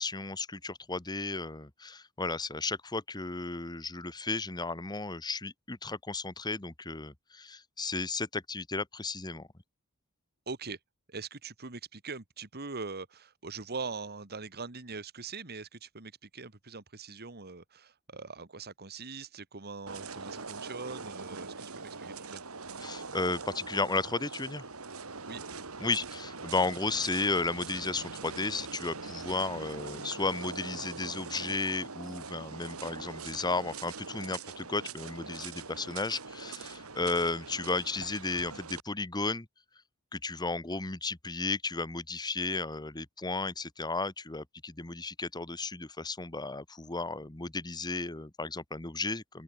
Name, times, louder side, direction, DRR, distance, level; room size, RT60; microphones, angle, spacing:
voice 1, 0.0-9.5 22.8-24.7 25.8-39.5 40.1-49.4, left 3 dB, 20° left, 1.3 m, -34 dB
voice 2, 10.5-10.8 11.1-22.4 25.3-25.4, right 4 dB, 45° right, 2.1 m, -42 dB
sound 1, 19.9-38.8, right 4 dB, 80° right, 2.9 m, -43 dB
open air
head